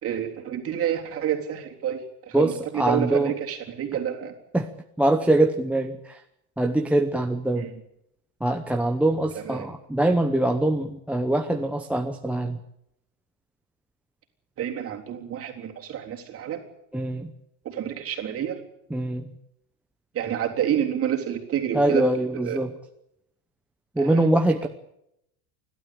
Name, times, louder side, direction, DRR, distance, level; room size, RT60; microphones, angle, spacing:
voice 1, 0.0-4.3 7.6-7.7 9.4-9.7 14.6-16.6 17.6-18.6 20.1-22.0 22.3-22.6 24.0-24.2, right 10 dB, 30° right, 2 dB, 3.7 m, -29 dB
voice 2, 2.3-3.3 4.5-4.7 5.0-6.2 6.6-7.6 8.4-12.6 16.9-17.3 18.9-19.3 21.7-22.7 23.9-24.7, right 1 dB, 5° right, 4 dB, 0.8 m, -23 dB
30.0 x 12.5 x 8.7 m, 0.80 s
supercardioid pair, 150°, 44 cm